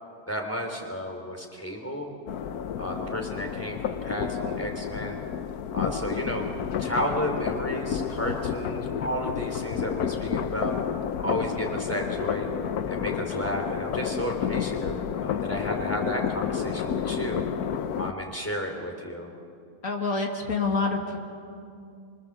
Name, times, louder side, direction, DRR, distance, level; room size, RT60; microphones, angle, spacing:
voice 1, 0.3-2.1 2.8-5.2 5.7-6.5 6.8-10.7 11.2-12.5 12.9-17.5 18.0-19.3, equal, 10° left, 2 dB, 3.3 m, -32 dB
sound 1, 2.3-18.1, left 8 dB, 80° left, 1.3 m, -30 dB
voice 2, 19.8-21.2, left 4 dB, 60° left, 1 dB, 2.5 m, -27 dB
28.5 x 25.0 x 7.2 m, 2.4 s
omnidirectional pair, 1.6 m